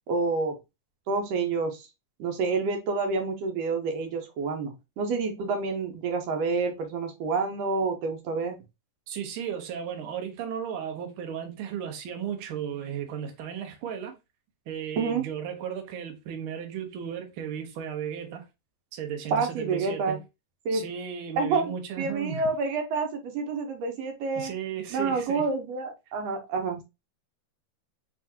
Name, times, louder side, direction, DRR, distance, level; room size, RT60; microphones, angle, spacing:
voice 1, 0.1-0.6 1.1-1.8 2.2-8.6 15.0-15.2 19.3-20.2 20.7-20.8 21.4-24.5 24.9-26.8, right 4 dB, 75° right, 1.6 m, -28 dB
voice 2, 9.1-14.1 14.7-18.4 18.9-20.2 20.7-22.5 24.4-25.4, right 8 dB, 90° right, 1.1 m, -35 dB
6.0 x 2.5 x 2.7 m
omnidirectional pair, 3.6 m